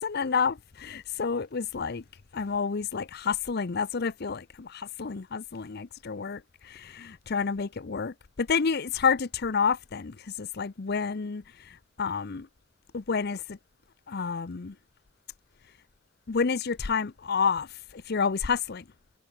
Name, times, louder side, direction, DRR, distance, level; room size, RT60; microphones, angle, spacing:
voice 1, 0.0-2.0 2.3-11.4 12.0-12.5 12.9-13.6 14.1-14.7 16.3-17.7 17.9-18.8, left 5 dB, 55° left, 0.6 m, -29 dB
head